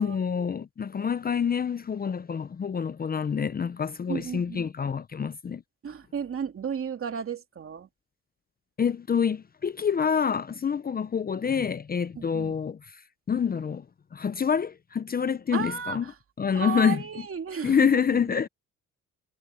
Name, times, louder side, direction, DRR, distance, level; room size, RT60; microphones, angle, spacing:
voice 1, 0.0-5.6 8.8-12.8 13.3-13.8 14.1-16.0 16.4-17.0 17.6-18.5, left 7 dB, 30° left, 0.6 m, -27 dB
voice 2, 4.1-4.7 5.8-7.9 12.2-12.5 15.5-16.1 16.5-18.2, right 7 dB, 45° right, 2.5 m, -34 dB
cardioid pair, 90°, 30 cm